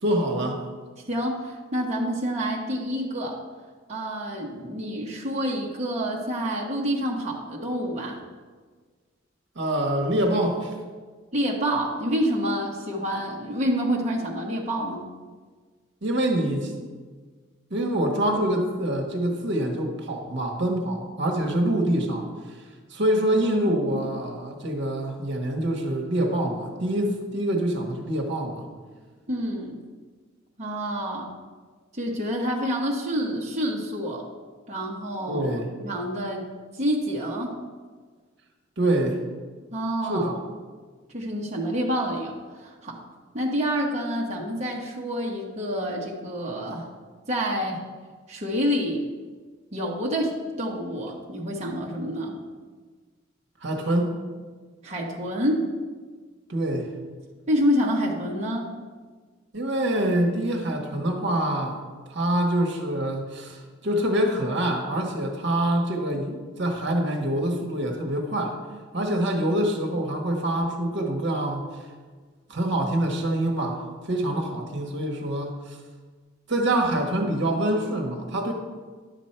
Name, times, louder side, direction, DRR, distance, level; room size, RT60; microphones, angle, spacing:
voice 1, 0.0-0.7 9.5-10.7 16.0-16.7 17.7-22.6 22.9-28.6 35.3-35.7 38.8-39.2 40.1-40.3 53.6-54.1 56.5-56.9 59.5-61.8 62.1-68.6 68.9-71.7 72.5-75.8 76.5-78.5, right 1 dB, 65° right, 3 dB, 1.3 m, -25 dB
voice 2, 1.0-3.4 3.9-8.2 11.3-15.1 29.3-29.8 30.6-31.4 31.9-34.3 34.7-37.6 39.7-40.3 41.1-43.0 43.3-46.9 47.3-47.9 48.3-49.0 49.7-52.4 54.8-55.7 57.5-58.7, equal, 35° right, -2 dB, 1.2 m, -28 dB
10.5 x 7.1 x 4.4 m, 1.5 s
head